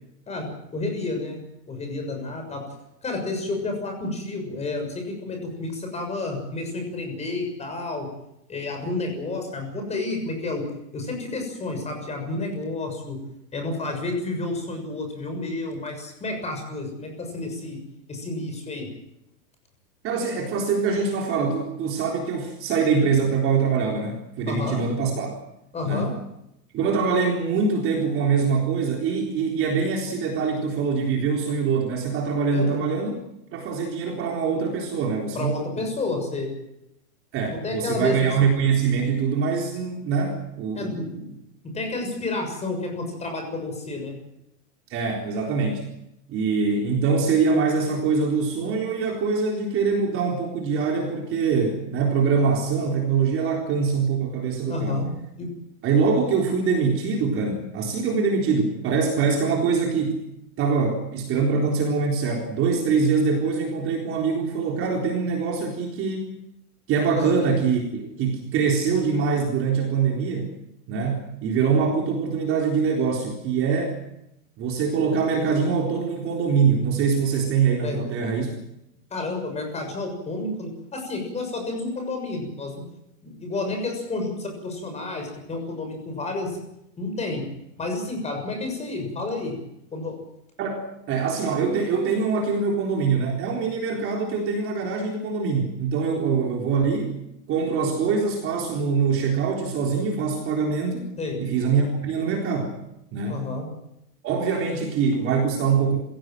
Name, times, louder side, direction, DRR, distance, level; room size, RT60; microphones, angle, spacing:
voice 1, 0.3-1.4 1.7-2.6 3.0-8.1 8.5-10.6 10.9-13.2 13.5-17.8 18.1-18.9 24.5-24.8 25.7-26.1 32.5-32.8 35.3-36.5 37.5-38.3 40.7-41.0 41.6-44.2 54.7-55.1 55.4-55.5 67.2-67.4 77.8-78.0 79.1-82.7 83.2-86.6 87.0-87.5 87.8-89.6 89.9-90.1 101.2-101.4 103.3-103.7, left 2 dB, 15° left, 4 dB, 6.6 m, -30 dB
voice 2, 20.0-25.3 25.8-26.1 26.7-33.2 33.5-35.9 37.3-41.3 44.9-45.8 46.3-55.0 55.8-60.2 60.6-66.3 66.9-70.5 70.9-74.0 74.6-78.5 90.6-97.1 97.5-101.1 101.4-102.8 103.1-103.5 104.2-106.0, right 5 dB, 25° right, 1 dB, 3.9 m, -24 dB
27.0 x 17.0 x 7.8 m, 0.83 s
supercardioid pair, 155°, 47 cm